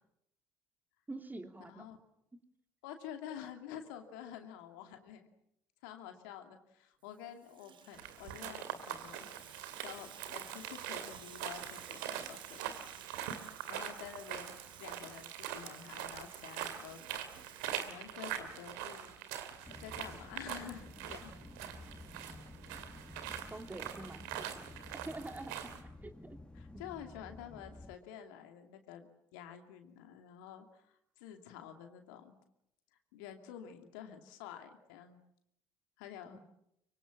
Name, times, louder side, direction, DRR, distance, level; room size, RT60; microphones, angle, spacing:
voice 1, 1.1-1.8 23.5-24.7 25.0-25.7 26.0-26.4 36.3-36.4, right 2 dB, 15° right, 6 dB, 3.0 m, -46 dB
voice 2, 2.8-5.3 5.8-12.7 13.7-17.4 17.8-19.1 19.7-21.3 26.5-32.4 33.1-35.2 36.0-36.4, left 9 dB, 70° left, 5 dB, 2.6 m, -49 dB
Water tap faucet / Sink (filling or washing), 7.1-18.5, right 9 dB, 50° right, 1.3 m, -55 dB
sound 1, 7.9-25.8, right 10 dB, 70° right, 2.4 m, -43 dB
sound 2, 19.6-28.0, left 2 dB, 10° left, 1.7 m, -52 dB
24.5 x 24.0 x 7.4 m, 0.78 s
hypercardioid pair, 55°, 11 cm